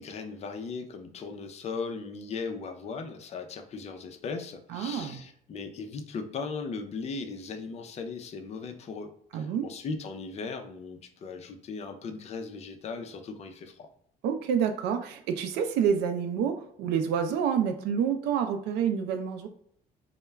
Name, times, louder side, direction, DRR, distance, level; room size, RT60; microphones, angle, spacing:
voice 1, 0.0-13.9, left 4 dB, 40° left, 5 dB, 0.4 m, -38 dB
voice 2, 4.7-5.2 9.3-9.7 14.2-19.5, right 7 dB, 80° right, 7 dB, 0.4 m, -28 dB
2.2 x 2.1 x 3.2 m, 0.65 s
cardioid pair, 110°, 17 cm